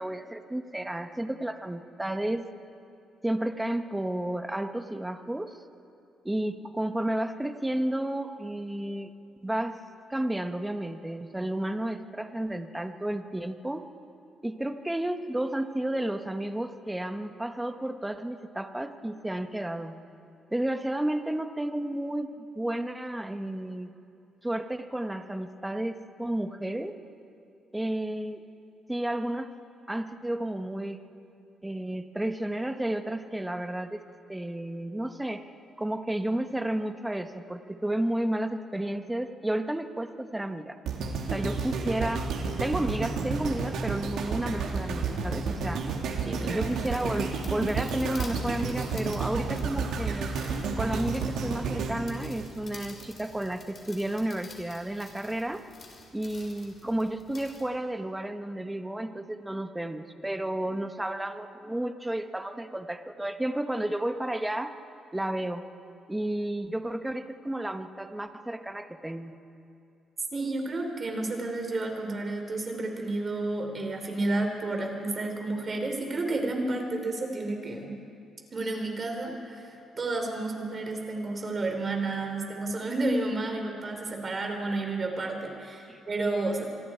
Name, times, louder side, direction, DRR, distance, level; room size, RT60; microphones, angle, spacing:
voice 1, 0.0-2.4 3.2-5.6 6.2-9.1 9.4-9.8 10.1-13.9 14.4-19.9 20.5-23.9 24.4-27.0 27.7-28.4 28.9-29.5 29.9-31.0 31.6-34.0 34.3-35.4 35.8-40.8 41.3-42.3 42.6-45.8 46.5-50.3 50.8-55.6 56.1-64.8 65.1-65.6 66.1-69.3 85.9-86.0, right 1 dB, 10° right, 8 dB, 1.2 m, -32 dB
sound 1, 40.9-53.1 53.6-53.7, right 4 dB, 80° right, 2.5 m, -31 dB
voice 2, 46.2-46.7 70.3-77.9 78.5-79.7 80.0-86.7, right 2 dB, 35° right, 3 dB, 4.0 m, -31 dB
sound 2, 46.6-57.7, left 4 dB, 45° left, 4.3 m, -50 dB
26.5 x 23.0 x 4.6 m, 2.6 s
cardioid pair, 90°, 0 cm